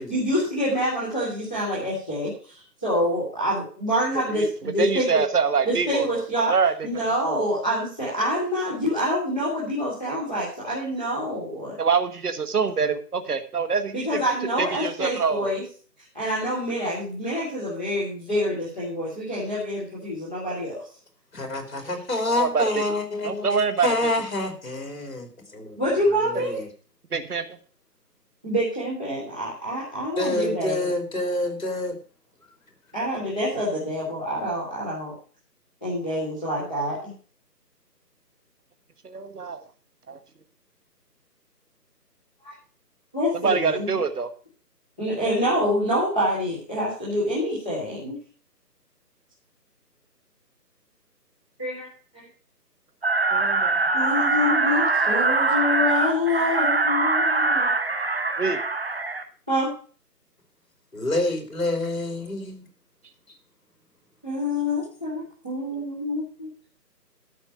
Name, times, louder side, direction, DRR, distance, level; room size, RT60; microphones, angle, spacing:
voice 1, 0.0-5.2 5.7-6.5 6.8-11.8 13.9-15.6 16.1-20.8 25.7-26.5 28.4-30.9 32.9-35.1 35.8-37.1 42.4-42.5 43.1-44.0 45.0-48.2 51.6-51.9 52.1-52.3 53.9-57.7 59.5-59.7 64.2-66.5, equal, 5° right, -15 dB, 1.3 m, -26 dB
voice 2, 4.3-6.2 6.4-7.1 11.8-14.2 14.6-15.5 22.3-22.7 23.2-24.1 27.1-27.4 39.0-39.6 40.1-40.2 43.3-44.3 53.3-53.8 58.4-58.6, right 5 dB, 65° right, 10 dB, 1.4 m, -25 dB
voice 3, 21.3-23.5 23.8-25.8 26.2-26.7 30.2-32.0 60.9-62.7, left 2 dB, 55° left, 4 dB, 3.9 m, -27 dB
sound 1, 53.0-59.2, right 3 dB, 35° right, 1.0 m, -23 dB
12.5 x 6.1 x 6.7 m, 0.41 s
figure-of-eight pair, 175°, 49 cm